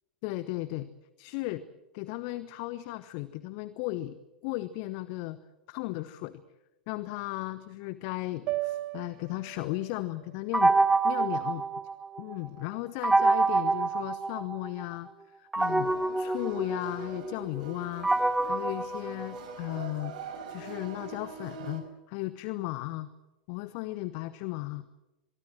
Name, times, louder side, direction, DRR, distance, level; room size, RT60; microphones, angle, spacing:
voice 1, 0.2-0.9 1.2-1.6 1.9-4.2 4.4-5.4 5.7-6.4 6.9-10.7 11.0-11.6 12.2-15.1 15.3-18.1 18.4-20.1 20.5-23.1 23.5-24.9, left 18 dB, 45° left, 15 dB, 1.0 m, -35 dB
sound 1, 8.5-12.7, right 18 dB, 40° right, 1.0 m, -39 dB
sound 2, 10.5-12.3 13.0-14.8 15.5-19.8, right 3 dB, 5° right, 1.0 m, -27 dB
Istanbul musician in transition, 15.6-21.8, right 5 dB, 55° right, 4.9 m, -44 dB
23.5 x 23.0 x 7.7 m, 1.0 s
figure-of-eight pair, 90°, 5 cm